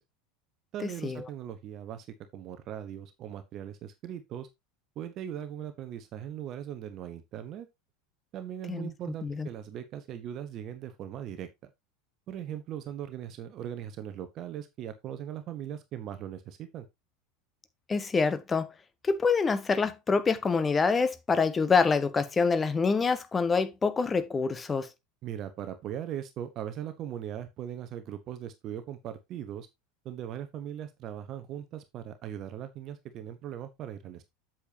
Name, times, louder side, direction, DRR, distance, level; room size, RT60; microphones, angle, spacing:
voice 1, 0.7-2.1 2.3-4.5 5.0-7.7 8.3-11.7 12.3-16.9 25.2-29.7 30.0-34.2, right 10 dB, 40° right, 1.1 m, -39 dB
voice 2, 17.9-18.7 19.0-24.9, left 4 dB, 20° left, 1.1 m, -26 dB
8.2 x 7.4 x 2.8 m
figure-of-eight pair, 80°, 0 cm